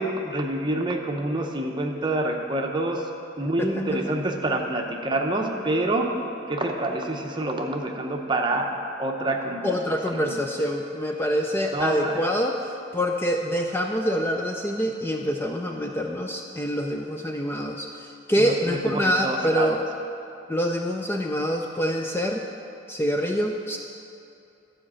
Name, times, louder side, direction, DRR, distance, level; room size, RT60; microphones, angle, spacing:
voice 1, 0.0-3.0 3.4-6.1 6.5-8.7 9.0-9.7 10.1-10.4 11.7-12.2 18.4-19.8, right 2 dB, 25° right, 2 dB, 0.8 m, -27 dB
voice 2, 3.6-4.0 9.6-19.8 20.5-22.4 22.9-23.8, equal, 10° left, 2 dB, 0.4 m, -26 dB
12.5 x 5.1 x 7.5 m, 2.7 s
head